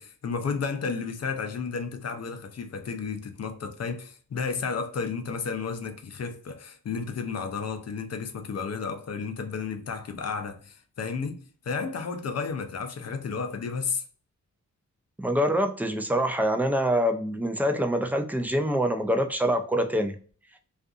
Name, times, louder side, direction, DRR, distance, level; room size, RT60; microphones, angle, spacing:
voice 1, 0.0-14.0, left 5 dB, 55° left, 0.5 m, -32 dB
voice 2, 15.2-20.2, equal, 5° right, 0.4 m, -25 dB
2.6 x 2.4 x 2.3 m
wide cardioid pair, 85°, 31 cm